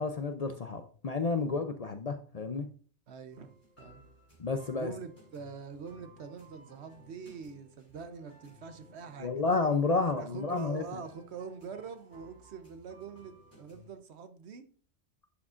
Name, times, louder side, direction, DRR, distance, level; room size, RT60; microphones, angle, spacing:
voice 1, 0.0-2.7 4.4-4.9 9.2-10.8, left 4 dB, 45° left, 0.5 m, -30 dB
voice 2, 3.1-4.0 4.8-9.3 10.0-14.7, right 5 dB, 75° right, 1.1 m, -44 dB
sound 1, 3.3-13.9, right 1 dB, 10° left, 3.5 m, -58 dB
11.0 x 6.2 x 2.5 m
omnidirectional pair, 1.1 m